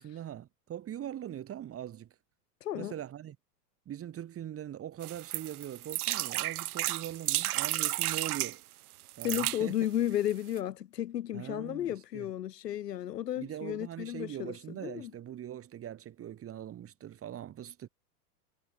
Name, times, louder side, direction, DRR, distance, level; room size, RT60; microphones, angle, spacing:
voice 1, 0.0-2.1 2.7-3.4 3.9-8.6 9.2-9.7 11.3-12.3 13.4-17.9, right 11 dB, 30° right, 2.9 m, -42 dB
voice 2, 2.6-2.9 9.2-14.5 14.8-15.1, left 12 dB, 85° left, 1.6 m, -33 dB
sound 1, 5.0-8.6 9.1-9.6 10.3-10.4 10.6-10.7, right 16 dB, 65° right, 2.5 m, -32 dB
hypercardioid pair, 110°, 47 cm